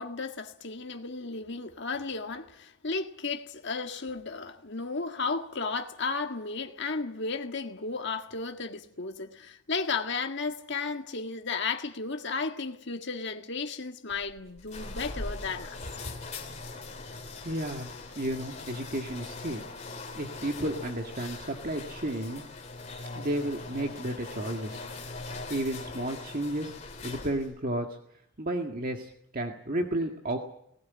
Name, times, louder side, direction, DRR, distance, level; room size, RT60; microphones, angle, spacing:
voice 1, 0.0-16.2, left 4 dB, 50° left, 1.8 m, -34 dB
sound 1, 14.1-27.6, left 3 dB, 30° left, 3.1 m, -41 dB
voice 2, 17.4-19.6 20.2-22.4 23.2-24.8 25.5-26.7 27.0-27.9 28.4-30.4, right 1 dB, 40° right, 1.9 m, -32 dB
19.5 x 18.5 x 9.6 m
head